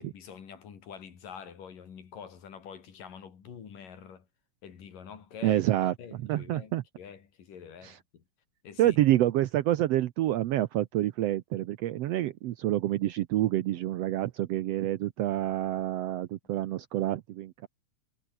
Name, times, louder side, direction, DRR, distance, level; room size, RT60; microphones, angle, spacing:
voice 1, 0.0-4.3 4.6-5.6 6.0-8.2 8.6-9.0, left 7 dB, 70° left, 4.8 m, -46 dB
voice 2, 5.4-5.9 6.3-6.8 7.8-8.0 8.8-17.7, right 14 dB, 90° right, 1.4 m, -27 dB
omnidirectional pair, 3.9 m